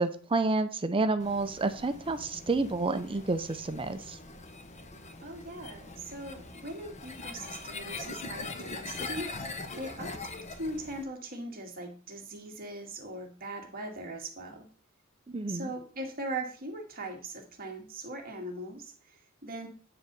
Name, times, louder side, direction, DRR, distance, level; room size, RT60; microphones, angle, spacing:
voice 1, 0.0-4.2 15.3-15.7, right 3 dB, 25° right, 11 dB, 0.6 m, -29 dB
sound 1, 1.2-11.0, left 3 dB, 35° left, 1.1 m, -42 dB
voice 2, 5.2-9.3 9.8-14.7 15.5-19.7, right 1 dB, 45° right, 2 dB, 1.9 m, -40 dB
9.6 x 3.9 x 6.7 m, 0.42 s
head